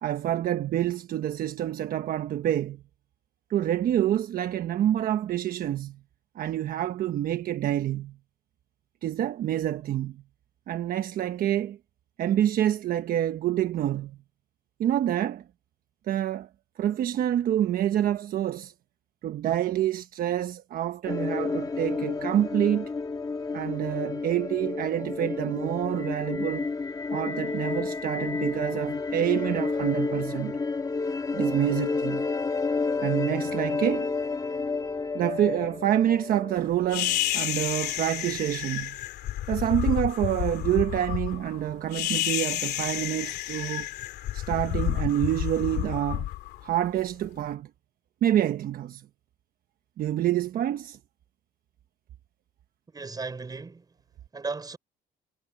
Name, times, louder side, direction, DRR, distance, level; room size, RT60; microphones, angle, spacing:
voice 1, 0.0-2.8 3.5-6.0 6.3-8.2 9.0-10.2 10.7-11.8 12.2-14.2 14.8-15.4 16.1-16.5 16.8-18.7 19.2-22.9 23.5-26.7 27.1-30.6 31.3-32.3 33.0-34.1 35.1-39.0 39.5-43.9 44.3-46.3 46.6-47.7 48.2-49.0 50.0-51.0, right 11 dB, 60° right, 1.2 m, -27 dB
sound 1, 21.1-37.5, left 4 dB, 20° left, 1.6 m, -30 dB
sound 2, 36.9-47.3, left 14 dB, 75° left, 2.8 m, -30 dB
voice 2, 52.9-53.9 54.3-54.8, right 4 dB, 25° right, 5.4 m, -36 dB
cardioid pair, 110°, 17 cm